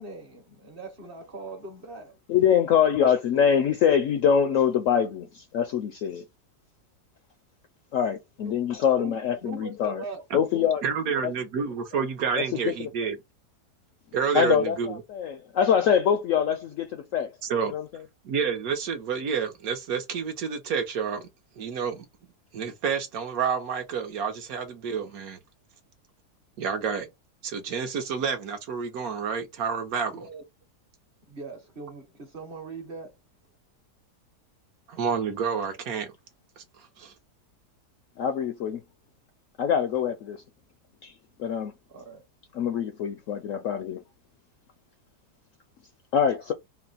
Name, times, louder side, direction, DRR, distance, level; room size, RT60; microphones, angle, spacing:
voice 1, 0.0-2.2 8.4-8.7 9.0-9.1 9.4-10.7 11.8-11.9 30.1-30.4 31.3-33.2 41.9-42.2, right 3 dB, 40° right, 1.1 m, -41 dB
voice 2, 2.3-6.2 7.9-10.0 10.3-10.8 11.2-11.3 12.4-12.9 14.3-17.3 17.7-17.8 38.2-38.8 39.6-40.4 41.0-41.1 41.4-41.7 42.5-44.0 46.1-46.5, left 8 dB, 70° left, 0.7 m, -24 dB
voice 3, 10.8-13.2 14.1-15.0 17.4-17.7 18.2-21.3 21.6-22.1 22.5-25.4 26.6-27.1 27.4-30.1 34.9-36.1 36.6-37.1, right 6 dB, 65° right, 1.2 m, -29 dB
4.1 x 2.1 x 3.9 m
omnidirectional pair, 1.8 m